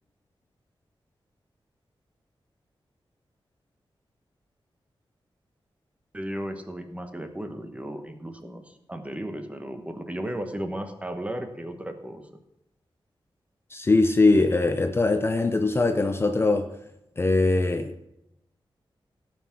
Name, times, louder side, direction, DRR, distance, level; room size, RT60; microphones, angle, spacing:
voice 1, 6.1-12.2, right 1 dB, 15° right, 7 dB, 1.2 m, -35 dB
voice 2, 13.7-16.7 17.2-18.1, left 3 dB, 25° left, 7 dB, 0.6 m, -22 dB
17.5 x 6.0 x 5.9 m, 0.85 s
wide cardioid pair, 175°, 9 cm